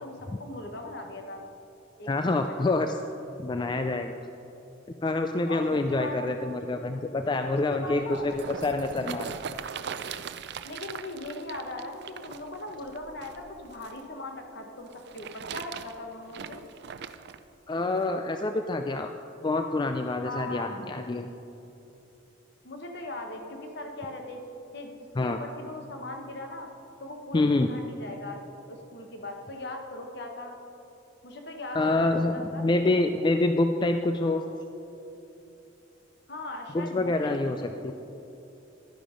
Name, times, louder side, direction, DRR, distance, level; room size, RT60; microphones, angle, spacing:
voice 1, 0.0-1.4 2.0-2.9 5.5-6.2 7.5-8.3 10.6-16.6 20.2-20.7 22.6-24.9 25.2-26.7 27.0-28.4 28.7-30.6 31.2-33.0 36.3-37.8, left 2 dB, 60° left, 3 dB, 1.3 m, -39 dB
voice 2, 2.1-2.9 3.4-4.1 5.0-8.3 8.6-9.3 17.7-19.1 19.4-21.3 25.2-25.4 27.3-27.7 31.7-34.4 36.7-37.6 37.8-37.9, left 2 dB, 25° left, 6 dB, 0.3 m, -26 dB
sound 1, 7.9-14.0 14.9-17.4 18.1-18.2, right 7 dB, 60° right, 0.4 m, -40 dB
11.5 x 10.0 x 5.2 m, 3.0 s
head